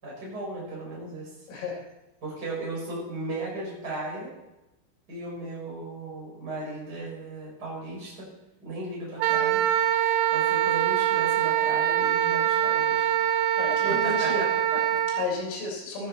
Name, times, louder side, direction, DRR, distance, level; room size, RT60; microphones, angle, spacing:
voice 1, 0.0-1.3 2.2-4.3 5.1-8.3 8.6-9.6 10.3-13.1 13.9-15.0, right 2 dB, 20° right, -4 dB, 5.2 m, -36 dB
voice 2, 1.5-1.8 13.6-14.4 15.1-16.1, left 2 dB, 70° left, -4 dB, 6.1 m, -32 dB
Wind instrument woodwind instrument, 9.2-15.3, right 11 dB, 80° right, 3.0 m, -24 dB
16.5 x 12.5 x 4.3 m, 0.97 s
omnidirectional pair, 6.0 m